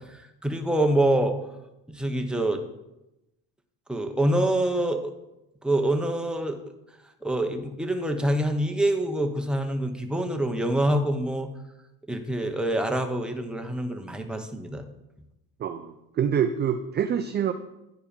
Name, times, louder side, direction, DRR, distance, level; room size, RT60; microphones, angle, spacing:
voice 1, 0.0-1.4 1.9-2.6 3.9-5.1 5.6-6.6 7.2-11.5 12.1-14.9, right 1 dB, ahead, 4 dB, 0.9 m, -26 dB
voice 2, 15.6-17.5, right 8 dB, 30° right, 8 dB, 0.4 m, -26 dB
10.0 x 4.5 x 5.2 m, 0.93 s
supercardioid pair, 95°, 38 cm